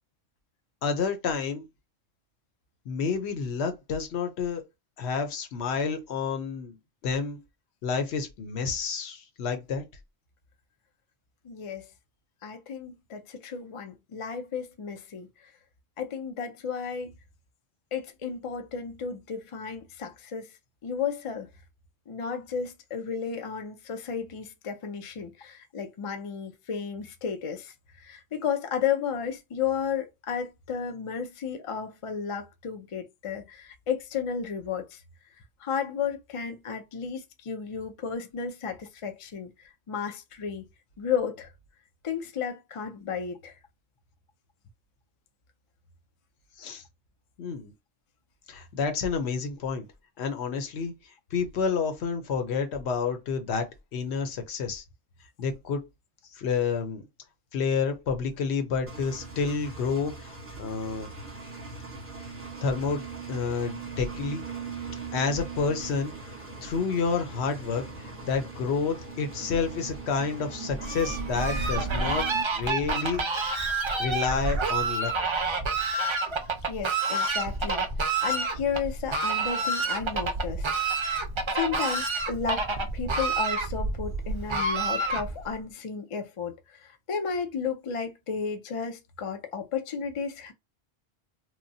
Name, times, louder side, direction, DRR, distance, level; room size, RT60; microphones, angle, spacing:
voice 1, 0.8-1.7 2.9-4.6 5.0-6.8 7.0-7.4 7.8-9.8 46.6-46.8 47.4-47.7 48.5-49.9 50.2-50.9 51.3-54.8 55.4-55.8 56.3-57.0 57.5-61.1 62.6-64.4 65.1-73.2 74.0-75.1, left 5 dB, 70° left, 0.9 m, -29 dB
voice 2, 11.4-11.9 12.4-15.5 16.0-17.1 17.9-20.5 20.8-21.5 22.1-35.0 35.6-40.7 41.0-41.5 42.0-43.5 76.7-77.9 78.2-80.7 81.5-90.5, left 6 dB, 50° left, 0.3 m, -33 dB
Engine, 58.9-72.4, right 5 dB, 15° right, 0.8 m, -40 dB
Fowl, 70.8-85.5, right 3 dB, 50° right, 0.3 m, -29 dB
3.0 x 2.2 x 2.6 m
omnidirectional pair, 1.2 m